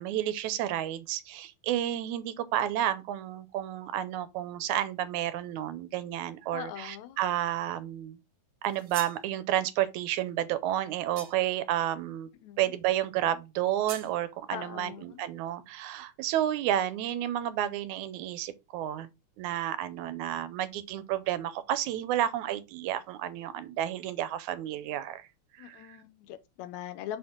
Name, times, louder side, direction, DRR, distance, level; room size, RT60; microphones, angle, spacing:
voice 1, 0.0-8.2 8.6-12.3 12.6-19.1 19.4-25.3 25.6-26.0, right 12 dB, 80° right, 1.9 m, -31 dB
voice 2, 6.5-7.2 12.4-12.7 14.5-15.3 25.6-27.2, left 11 dB, 80° left, 1.9 m, -41 dB
sound 1, 8.6-9.3 11.2-11.6 13.9-14.1, right 8 dB, 60° right, 1.8 m, -42 dB
6.3 x 4.3 x 3.7 m
omnidirectional pair, 3.5 m